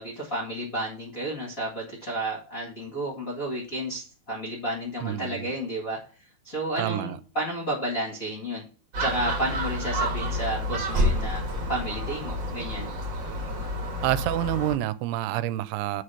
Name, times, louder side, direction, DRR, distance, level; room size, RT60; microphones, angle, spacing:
voice 1, 0.0-8.6 9.0-11.4 11.7-12.9, right 1 dB, 35° left, 1.4 m, -32 dB
voice 2, 5.0-5.5 6.8-7.2 14.0-16.0, right 14 dB, 85° right, 2.6 m, -28 dB
Gull seagull, 8.9-14.8, equal, 45° right, 1.6 m, -29 dB
8.1 x 5.0 x 5.7 m
omnidirectional pair, 4.7 m